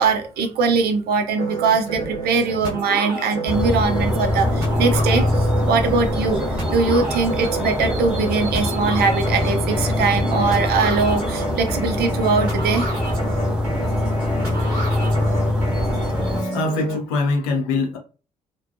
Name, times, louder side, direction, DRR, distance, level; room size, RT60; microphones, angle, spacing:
voice 1, 0.0-6.4 6.7-12.8, right 4 dB, 60° right, 0.6 m, -21 dB
sound 1, 1.4-17.0, right 2 dB, 80° right, 1.0 m, -29 dB
sound 2, 3.5-16.4, left 1 dB, 5° right, 0.8 m, -23 dB
voice 2, 16.2-18.0, left 3 dB, 75° left, 0.5 m, -25 dB
2.5 x 2.2 x 2.5 m
figure-of-eight pair, 40°, 19 cm